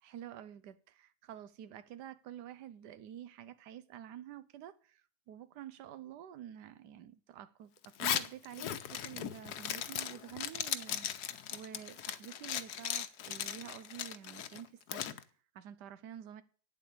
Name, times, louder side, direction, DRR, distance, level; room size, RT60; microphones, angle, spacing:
voice 1, 0.0-15.1 15.5-16.4, right 10 dB, 90° right, 1.3 m, -49 dB
Zipper (clothing), 7.8-15.2, left 10 dB, 75° left, 1.3 m, -38 dB
9.2 x 7.7 x 8.0 m
omnidirectional pair, 1.7 m